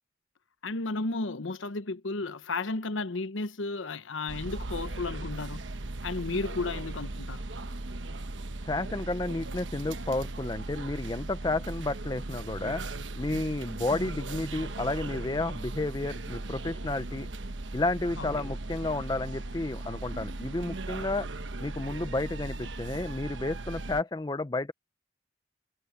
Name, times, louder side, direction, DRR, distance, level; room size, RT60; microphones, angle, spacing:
voice 1, 0.6-5.6 6.0-7.4 13.9-14.1 18.2-18.3, left 3 dB, 90° left, 1.0 m, -33 dB
sound 1, 4.3-24.0, right 2 dB, 80° right, 1.1 m, -38 dB
voice 2, 8.6-12.8 13.2-17.3 17.7-21.3 21.6-24.7, left 2 dB, 20° left, 0.5 m, -31 dB
head